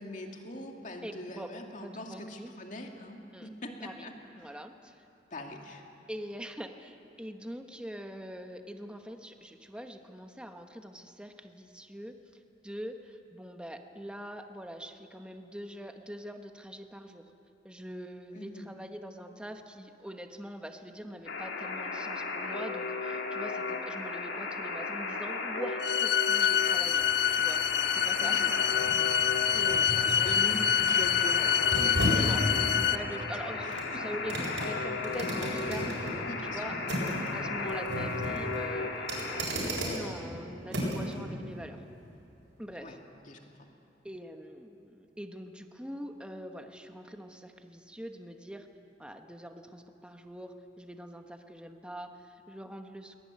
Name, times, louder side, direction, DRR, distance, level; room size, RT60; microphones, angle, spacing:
voice 1, 0.0-4.1 5.3-5.9 18.3-18.7 28.2-28.7 29.6-31.7 33.2-33.3 33.6-34.0 36.3-36.8 42.8-43.0 43.2-43.7, left 1 dB, 45° left, 2 dB, 2.5 m, -42 dB
voice 2, 1.0-1.5 1.8-2.5 3.3-3.5 3.8-4.1 4.4-5.0 6.1-12.2 12.6-17.3 17.6-27.0 27.3-27.6 27.9-28.4 29.5-30.4 32.1-36.8 37.3-41.8 42.6-43.0 44.0-48.7 49.0-53.2, equal, 5° right, 5 dB, 1.1 m, -43 dB
Alarm, 21.3-39.5, left 3 dB, 85° left, 2.7 m, -35 dB
sound 1, 25.8-33.0, left 9 dB, 60° left, 0.8 m, -26 dB
sound 2, 26.5-41.2 41.6-41.7, equal, 75° right, 7.6 m, -36 dB
22.0 x 20.0 x 9.5 m, 2.7 s
head